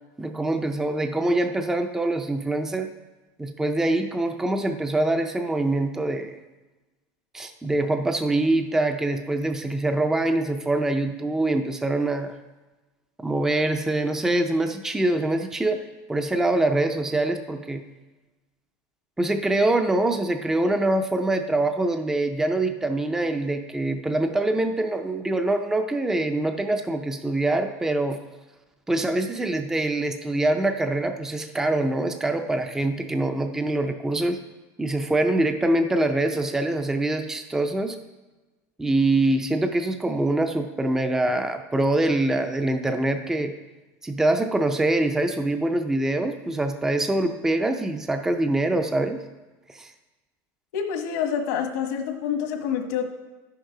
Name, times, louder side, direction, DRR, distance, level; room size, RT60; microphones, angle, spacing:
voice 1, 0.2-2.9 3.4-6.4 7.3-12.3 13.2-15.8 16.1-17.8 19.2-28.2 28.9-34.4 34.8-38.0 38.8-43.5 44.0-49.2 49.7-49.9, right 2 dB, 5° right, 7 dB, 0.4 m, -24 dB
voice 2, 50.7-53.0, left 8 dB, 80° left, 5 dB, 1.4 m, -27 dB
10.5 x 6.5 x 4.8 m, 1.2 s
supercardioid pair, 150°, 9 cm